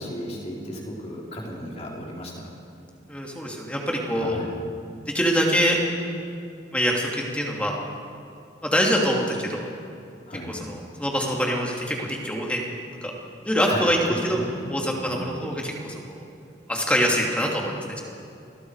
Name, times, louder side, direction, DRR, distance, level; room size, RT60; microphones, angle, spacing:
voice 1, 0.0-2.5 4.1-4.5 10.3-10.6 13.7-14.5 14.9-15.3, equal, 35° left, -3 dB, 4.2 m, -34 dB
voice 2, 3.1-4.4 5.1-5.8 6.7-7.8 8.6-9.7 10.5-12.7 13.0-13.1 13.4-14.4 14.7-16.2 16.7-18.0, equal, 5° left, -1 dB, 2.7 m, -24 dB
28.5 x 20.5 x 4.9 m, 2.5 s
head